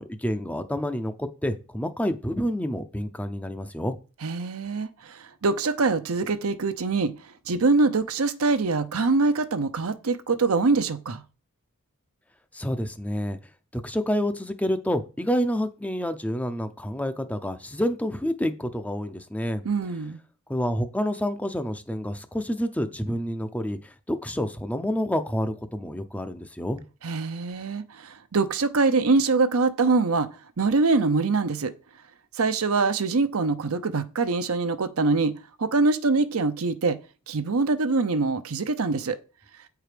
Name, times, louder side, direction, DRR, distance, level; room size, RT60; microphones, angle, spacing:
voice 1, 0.0-4.0 12.5-13.4 13.7-19.6 20.5-26.8, equal, 5° left, 0.6 m, -28 dB
voice 2, 4.2-7.1 7.5-11.2 19.6-20.2 27.0-30.3 30.6-31.7 32.3-37.0 37.3-39.2, right 3 dB, 70° right, 0.7 m, -24 dB
8.4 x 4.7 x 5.1 m
head